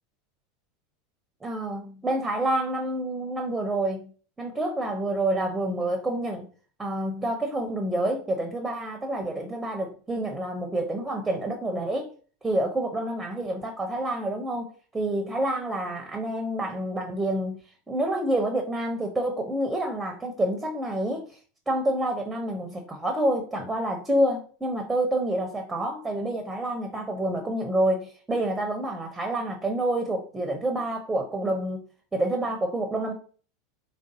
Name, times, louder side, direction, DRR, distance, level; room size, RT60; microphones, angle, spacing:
voice 1, 1.4-4.1 4.4-6.4 6.8-12.1 12.4-17.6 17.9-21.3 21.7-31.8 32.1-33.1, right 1 dB, 10° right, 0.7 m, -28 dB
3.5 x 2.6 x 3.7 m
figure-of-eight pair, 85°, 0 cm